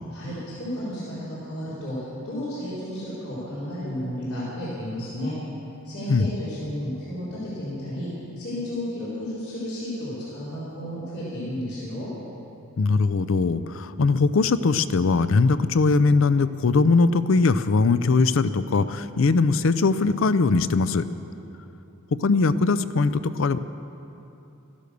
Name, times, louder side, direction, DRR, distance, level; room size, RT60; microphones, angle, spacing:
voice 1, 0.1-5.4 5.8-8.1 8.4-12.1, left 1 dB, 85° left, -10 dB, 4.0 m, -32 dB
voice 2, 12.8-21.1 22.2-23.6, left 4 dB, 60° left, 14 dB, 0.5 m, -21 dB
13.5 x 11.5 x 6.8 m, 2.8 s
head